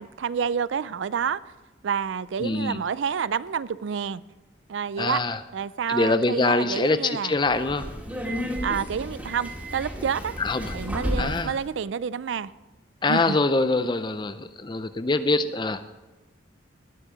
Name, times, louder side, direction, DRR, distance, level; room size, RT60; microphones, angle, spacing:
voice 1, 0.0-1.4 1.8-4.2 4.7-5.2 5.5-7.4 8.6-10.3 10.7-12.5 13.1-13.4, right 7 dB, 80° right, 0.4 m, -28 dB
voice 2, 2.4-2.8 5.0-5.4 5.9-7.9 10.4-10.8 11.2-11.5 13.0-15.9, left 3 dB, 25° left, 0.5 m, -24 dB
Subway metro underground, 7.4-11.6, equal, 10° right, 2.1 m, -32 dB
19.0 x 7.3 x 5.0 m
head